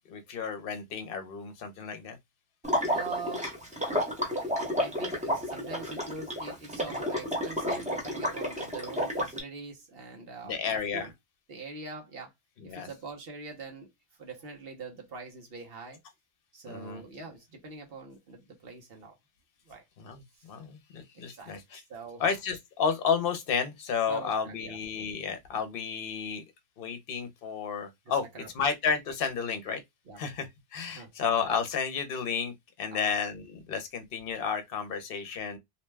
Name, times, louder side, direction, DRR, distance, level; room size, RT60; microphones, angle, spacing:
voice 1, 0.1-2.2 10.4-11.1 12.6-12.9 16.7-17.0 20.0-20.2 20.5-21.8 22.2-26.4 26.8-28.3 28.5-29.8 30.2-35.6, left 6 dB, 65° left, 0.8 m, -32 dB
Water / Liquid, 2.6-9.4, equal, 10° right, 0.7 m, -31 dB
voice 2, 2.8-11.1 11.5-12.3 12.6-13.9 14.2-16.0 16.5-19.2 19.7-19.8 21.1-22.3 24.1-24.8 28.1-28.5 30.1-30.2 30.9-31.1 32.9-33.2, right 4 dB, 65° right, 1.0 m, -43 dB
2.8 x 2.1 x 3.2 m
omnidirectional pair, 1.1 m